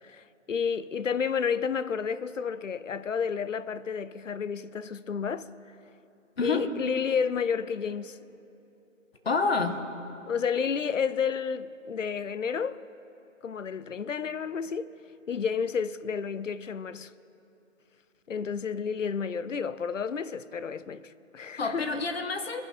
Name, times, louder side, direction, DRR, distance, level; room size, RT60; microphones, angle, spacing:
voice 1, 0.0-5.5 6.4-8.2 10.3-12.8 13.4-14.9 15.3-17.1 18.3-22.0, left 6 dB, 70° left, 0.8 m, -31 dB
voice 2, 9.2-9.8 21.6-22.6, left 4 dB, 50° left, 1.5 m, -28 dB
25.0 x 11.0 x 4.5 m
hypercardioid pair, 170°, 39 cm